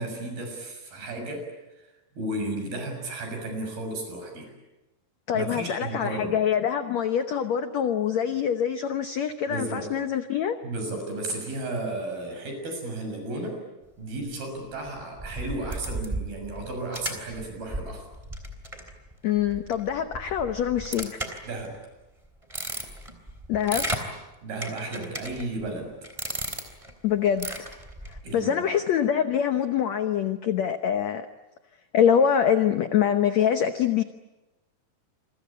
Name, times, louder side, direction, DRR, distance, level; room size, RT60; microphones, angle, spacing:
voice 1, 0.0-1.4 2.2-4.5 5.3-6.4 9.5-9.9 10.6-13.6 14.0-18.1 21.4-21.8 24.4-25.9 28.2-28.5, right 2 dB, 65° right, 4 dB, 8.6 m, -33 dB
voice 2, 5.3-10.6 19.2-21.2 23.5-23.9 27.0-27.7 28.1-31.3 31.9-34.0, left 8 dB, 80° left, 8 dB, 1.6 m, -24 dB
sound 1, 14.9-21.8 22.2-24.1 24.6-25.7 26.0-26.9 27.3-28.2, right 1 dB, 10° right, 3.0 m, -35 dB
28.0 x 23.5 x 8.8 m, 1.0 s
omnidirectional pair, 4.6 m